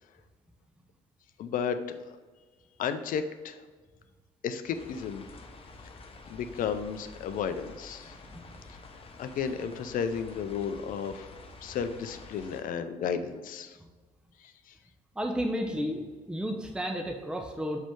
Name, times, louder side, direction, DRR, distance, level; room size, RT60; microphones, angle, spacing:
voice 1, 1.4-2.0 2.8-3.6 4.4-5.3 6.3-8.2 8.7-11.3 11.6-13.8 14.4-14.7, left 7 dB, 50° left, 10 dB, 0.6 m, -33 dB
sound 1, 4.7-12.6, left 3 dB, 30° left, 0.9 m, -49 dB
voice 2, 15.2-17.8, equal, 5° right, 2 dB, 0.8 m, -32 dB
6.6 x 5.0 x 3.6 m, 1.4 s
figure-of-eight pair, 45°, 18 cm